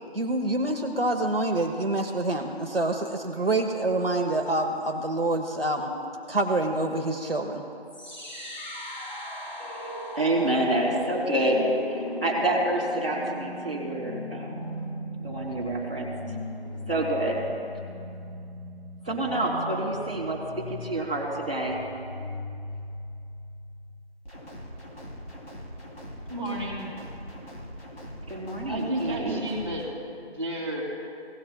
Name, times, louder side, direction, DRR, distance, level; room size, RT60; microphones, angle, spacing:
voice 1, 0.1-5.9 6.3-7.6, right 2 dB, 60° right, 2 dB, 1.1 m, -26 dB
sound 1, 7.9-23.9, left 1 dB, 45° left, 1.6 m, -38 dB
voice 2, 10.1-14.6 15.2-16.1 16.9-17.4 19.0-21.8 28.3-29.4, right 1 dB, 10° right, -15 dB, 1.5 m, -27 dB
sound 2, 24.2-29.9, equal, 80° left, 3.0 m, -42 dB
voice 3, 26.3-26.8 28.7-29.9 30.3-30.8, right 1 dB, 25° right, -5 dB, 2.1 m, -31 dB
18.0 x 12.0 x 2.3 m, 2.6 s
figure-of-eight pair, 180°, 32 cm